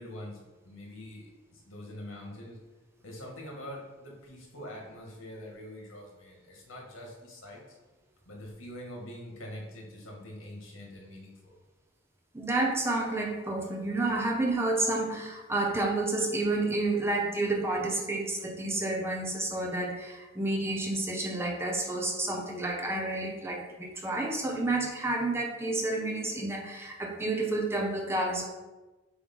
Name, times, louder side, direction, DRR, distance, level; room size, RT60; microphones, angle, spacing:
voice 1, 0.0-2.6 3.0-7.8 8.3-11.5, left 1 dB, 80° left, -1 dB, 2.0 m, -44 dB
voice 2, 12.3-28.5, right 2 dB, 10° right, 1 dB, 0.7 m, -30 dB
7.0 x 3.3 x 5.4 m, 1.1 s
head